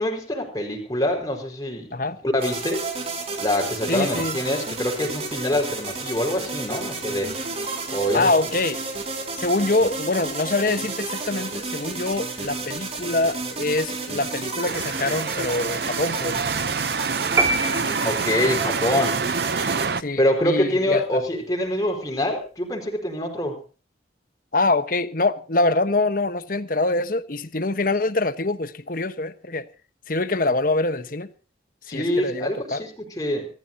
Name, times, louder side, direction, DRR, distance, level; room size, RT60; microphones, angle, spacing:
voice 1, 0.0-1.9 2.2-2.9 3.4-7.3 7.9-8.3 18.0-19.2 20.2-23.6 31.9-33.5, left 1 dB, 20° left, 4.7 m, -25 dB
sound 1, 2.4-19.9, right 3 dB, 35° right, 3.8 m, -31 dB
voice 2, 3.9-4.4 8.1-8.8 9.4-16.4 20.0-21.2 24.5-29.7 30.1-31.3 31.9-32.8, left 2 dB, 50° left, 1.1 m, -24 dB
sound 2, 14.7-20.0, right 5 dB, 55° right, 0.7 m, -27 dB
sound 3, 17.4-18.6, right 3 dB, 15° right, 2.1 m, -24 dB
26.0 x 14.0 x 2.8 m
head